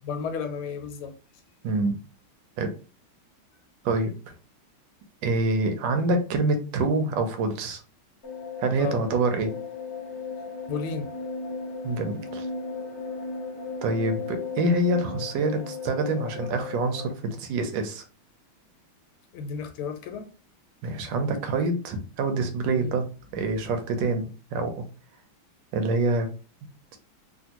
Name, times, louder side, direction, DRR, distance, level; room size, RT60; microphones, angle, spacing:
voice 1, 0.0-1.1 8.8-9.0 10.7-11.1 19.3-20.3 22.8-22.9, left 5 dB, 85° left, 1.5 m, -32 dB
voice 2, 3.8-4.3 5.2-7.8 8.6-9.5 11.8-12.5 13.8-18.0 20.8-23.0 23.3-24.8 25.7-26.3, right 2 dB, 70° right, 1.2 m, -26 dB
sound 1, 8.2-17.1, left 4 dB, 45° left, 0.9 m, -36 dB
3.4 x 2.5 x 2.8 m
omnidirectional pair, 2.3 m